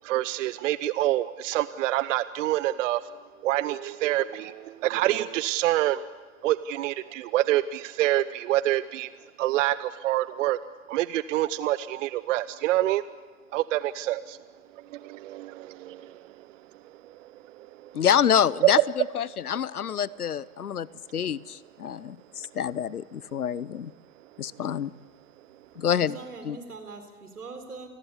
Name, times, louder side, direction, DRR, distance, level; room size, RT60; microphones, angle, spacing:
voice 1, 0.0-3.1 3.4-6.0 6.4-9.1 9.4-10.6 10.9-13.0 13.5-14.4 14.7-16.5 16.8-17.9 18.6-18.8, right 14 dB, 60° right, 16 dB, 0.8 m, -27 dB
voice 2, 17.9-18.8 19.1-20.9 21.1-23.9 24.4-24.9 25.8-26.2 26.4-26.6, left 8 dB, 90° left, 21 dB, 0.8 m, -26 dB
voice 3, 25.9-27.9, right 4 dB, 85° right, 7 dB, 4.3 m, -42 dB
28.5 x 20.0 x 8.3 m, 1.4 s
hypercardioid pair, 100°, 43 cm